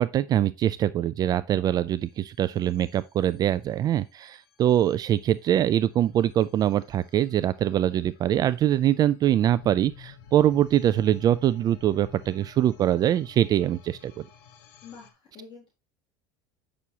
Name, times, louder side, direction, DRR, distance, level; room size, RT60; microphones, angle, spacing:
voice 1, 0.0-14.2, right 11 dB, 35° right, 0.3 m, -23 dB
sound 1, 2.0-15.1, left 8 dB, 90° left, 1.2 m, -52 dB
voice 2, 14.8-15.7, left 5 dB, 45° left, 3.8 m, -47 dB
8.2 x 6.2 x 2.8 m
supercardioid pair, 125°, 11 cm